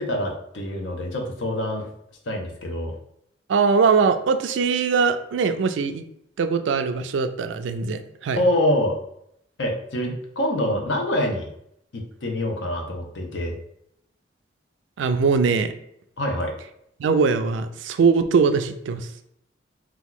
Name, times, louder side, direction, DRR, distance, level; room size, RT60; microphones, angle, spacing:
voice 1, 0.0-1.9 2.3-2.9 8.4-9.0 9.6-11.5 11.9-13.5 16.2-16.5, left 1 dB, 85° left, 2 dB, 0.7 m, -25 dB
voice 2, 3.5-6.0 6.4-8.4 15.0-15.7 17.0-19.1, right 5 dB, 80° right, 9 dB, 0.4 m, -21 dB
2.9 x 2.3 x 3.7 m, 0.74 s
head